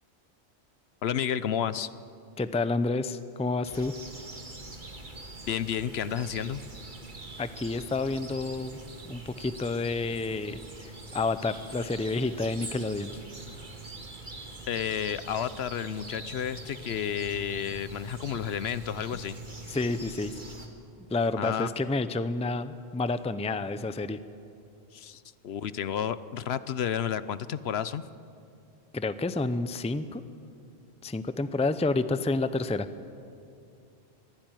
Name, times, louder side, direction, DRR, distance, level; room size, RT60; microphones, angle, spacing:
voice 1, 1.0-1.9 5.5-6.6 14.7-19.4 21.3-21.7 24.9-28.0, left 9 dB, 70° left, 15 dB, 0.9 m, -31 dB
voice 2, 2.4-3.9 7.4-8.8 9.0-13.2 13.5-13.6 19.7-20.3 21.1-24.2 28.9-30.2 31.0-32.9, left 3 dB, 10° left, 12 dB, 0.5 m, -29 dB
sound 1, 3.6-20.7, right 2 dB, 45° right, 2.1 m, -43 dB
23.0 x 15.5 x 9.1 m, 2.5 s
omnidirectional pair, 1.1 m